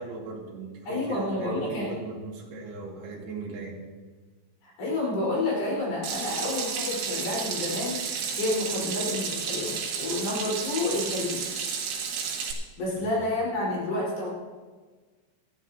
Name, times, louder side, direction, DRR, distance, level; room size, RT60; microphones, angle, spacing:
voice 1, 0.0-3.8 13.0-13.1, right 3 dB, 60° right, -2 dB, 3.9 m, -38 dB
voice 2, 0.8-1.9 4.6-8.0 8.4-11.4 12.8-14.3, left 2 dB, 50° left, -5 dB, 6.2 m, -29 dB
Water tap faucet / Sink (filling or washing), 6.0-12.5, right 6 dB, 80° right, 4.1 m, -32 dB
18.5 x 13.5 x 2.9 m, 1.4 s
omnidirectional pair, 5.7 m